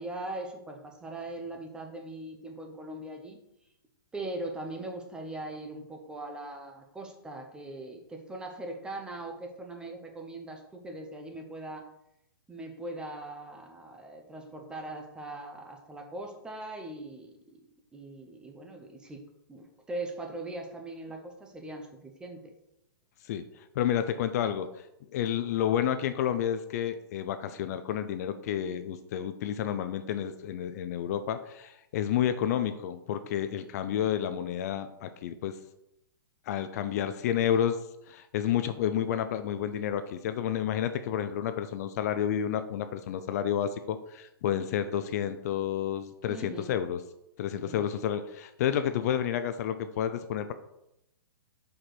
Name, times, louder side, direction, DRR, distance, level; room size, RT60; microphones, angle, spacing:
voice 1, 0.0-3.4 4.1-11.9 12.5-17.3 17.9-19.2 19.5-22.5 46.3-46.7 47.5-47.8, right 2 dB, 5° right, 3 dB, 0.8 m, -40 dB
voice 2, 23.2-24.9 25.1-35.6 36.5-37.8 38.1-47.0 47.4-50.5, left 9 dB, 45° left, 10 dB, 0.5 m, -30 dB
5.0 x 4.3 x 6.0 m, 0.82 s
hypercardioid pair, 155°, 12 cm